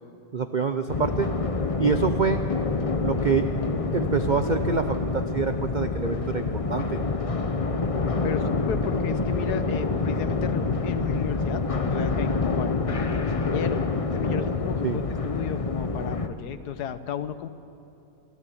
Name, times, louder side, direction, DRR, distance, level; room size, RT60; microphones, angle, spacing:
voice 1, 0.3-1.3 1.8-2.4 3.0-3.5 3.9-7.0 14.8-15.0, right 5 dB, 85° right, 8 dB, 0.4 m, -26 dB
sound 1, 0.9-16.3, left 3 dB, 40° left, 0.5 m, -27 dB
voice 2, 8.2-13.8 14.1-17.5, left 8 dB, 70° left, 12 dB, 1.3 m, -34 dB
26.0 x 14.5 x 8.5 m, 2.8 s
omnidirectional pair, 1.9 m